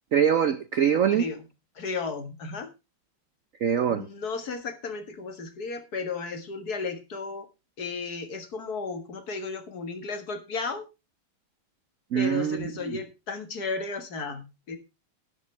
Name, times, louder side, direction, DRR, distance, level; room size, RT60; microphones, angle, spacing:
voice 1, 0.1-1.3 3.6-4.1 12.1-13.0, right 8 dB, 90° right, 0.7 m, -24 dB
voice 2, 1.8-2.7 3.9-7.5 7.8-10.9 12.1-14.8, left 4 dB, 50° left, 2.0 m, -34 dB
12.0 x 11.0 x 3.3 m
omnidirectional pair, 2.3 m